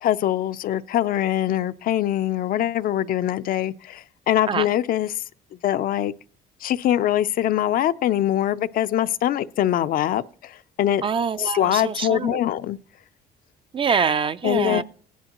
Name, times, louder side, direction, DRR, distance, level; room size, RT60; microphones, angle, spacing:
voice 1, 0.0-5.2 5.6-6.1 6.6-11.0 11.4-12.8 14.4-14.8, left 12 dB, 60° left, 0.5 m, -23 dB
voice 2, 11.0-12.4 13.7-14.8, right 6 dB, 30° right, 0.4 m, -24 dB
16.5 x 10.5 x 3.0 m
cardioid pair, 110°, 17 cm